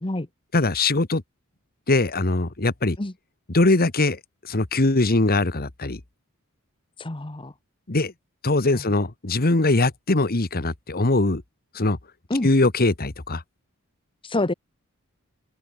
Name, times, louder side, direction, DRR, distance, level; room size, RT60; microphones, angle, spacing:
voice 1, 0.5-1.2 1.9-3.0 3.5-6.0 7.9-8.1 8.4-11.4 11.7-12.0 12.4-13.4, left 2 dB, 45° left, 1.5 m, -21 dB
voice 2, 7.0-7.5 8.7-8.8 12.3-12.5 14.2-14.5, left 2 dB, 25° left, 1.1 m, -27 dB
open air
head